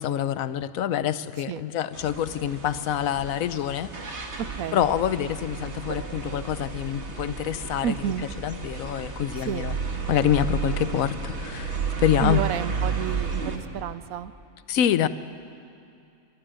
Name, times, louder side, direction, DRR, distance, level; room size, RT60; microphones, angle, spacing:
voice 1, 0.0-4.3 4.7-8.1 8.4-9.8 10.1-12.4 14.7-15.1, left 10 dB, 85° left, 14 dB, 1.1 m, -26 dB
sound 1, 1.9-13.6, right 5 dB, 55° right, 1.8 m, -32 dB
voice 2, 4.4-4.9 7.8-8.3 9.4-9.6 12.2-14.3 15.0-15.1, right 9 dB, 85° right, 14 dB, 1.1 m, -30 dB
27.0 x 13.0 x 7.6 m, 2.6 s
omnidirectional pair, 1.4 m